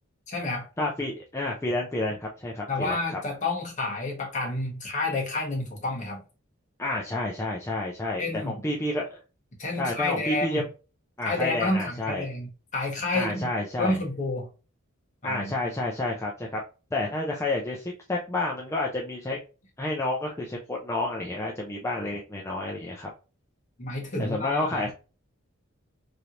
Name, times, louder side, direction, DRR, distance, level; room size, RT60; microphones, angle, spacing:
voice 1, 0.3-0.7 2.7-6.2 8.2-8.6 9.6-10.6 11.2-13.5 13.8-14.5 15.2-15.5 23.8-24.9, left 2 dB, 35° left, 1.1 m, -29 dB
voice 2, 0.8-3.0 6.8-9.0 9.8-10.6 11.2-12.2 13.1-14.0 15.2-16.6 16.9-19.4 19.8-23.1 24.2-24.9, left 2 dB, 15° left, 0.4 m, -30 dB
3.2 x 2.9 x 2.5 m
head